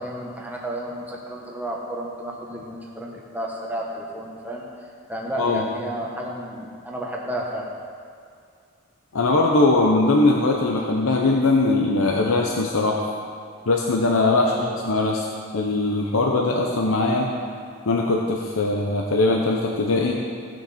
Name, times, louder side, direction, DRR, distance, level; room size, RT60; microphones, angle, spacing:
voice 1, 0.0-4.6 5.1-7.7 14.4-14.8, right 1 dB, 10° right, -2 dB, 1.1 m, -32 dB
voice 2, 9.1-13.1 13.7-15.2 15.5-17.3 17.9-20.2, left 2 dB, 80° left, 0 dB, 0.8 m, -21 dB
16.0 x 6.5 x 4.3 m, 2.2 s
head